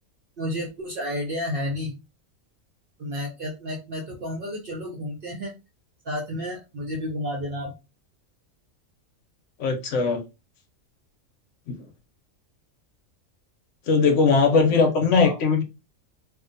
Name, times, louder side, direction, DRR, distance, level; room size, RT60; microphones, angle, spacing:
voice 1, 0.4-2.0 3.0-5.6 6.0-7.7 14.5-15.4, left 1 dB, 60° right, 0.6 m, -31 dB
voice 2, 9.6-10.2 11.7-11.8 13.9-15.6, left 4 dB, 65° left, 0.9 m, -20 dB
2.6 x 2.1 x 2.5 m
omnidirectional pair, 1.4 m